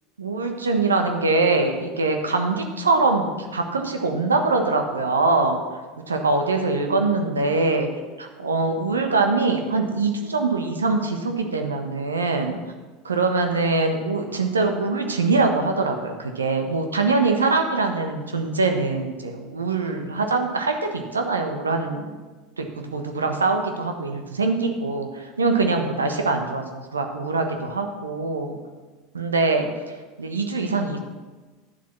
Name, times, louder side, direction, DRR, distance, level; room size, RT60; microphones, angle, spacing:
voice 1, 0.2-5.6 6.1-7.9 8.2-12.6 13.0-22.1 22.6-28.6 29.1-29.6 30.2-31.0, right 3 dB, 80° right, 5 dB, 1.2 m, -23 dB
11.0 x 7.4 x 6.0 m, 1.3 s
figure-of-eight pair, 75°, 0 cm